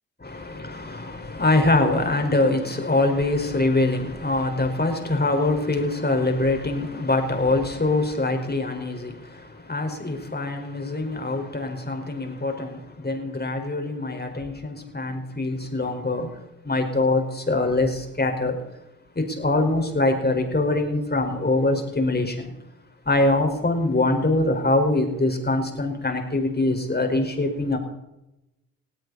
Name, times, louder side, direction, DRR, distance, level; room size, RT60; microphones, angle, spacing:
voice 1, 0.2-16.4 16.6-18.6 19.1-22.5 23.0-27.8, left 2 dB, 25° left, 4 dB, 4.9 m, -24 dB
20.0 x 17.0 x 4.2 m, 0.91 s
hypercardioid pair, 40°, 39 cm